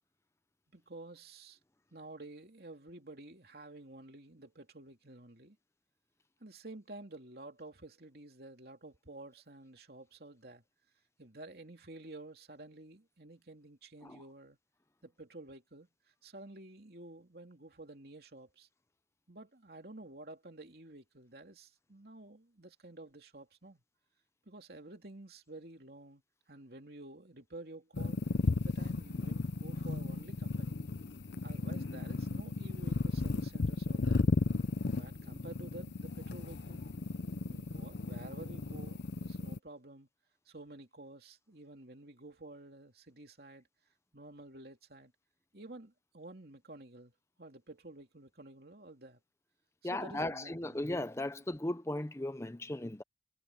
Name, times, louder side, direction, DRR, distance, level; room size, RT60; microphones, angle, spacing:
voice 1, 0.7-1.6 1.9-5.6 6.4-10.6 11.2-14.6 15.0-18.7 19.3-23.8 24.4-26.2 26.5-28.2 28.6-30.8 31.4-34.3 34.9-36.8 37.5-40.1 40.4-43.7 44.1-45.1 45.5-47.1 47.4-49.2 49.8-50.9, right 2 dB, 55° right, 3.1 m, -51 dB
sound 1, 27.9-39.6, left 3 dB, 70° left, 0.6 m, -34 dB
voice 2, 49.8-53.0, left 1 dB, 15° left, 0.6 m, -37 dB
head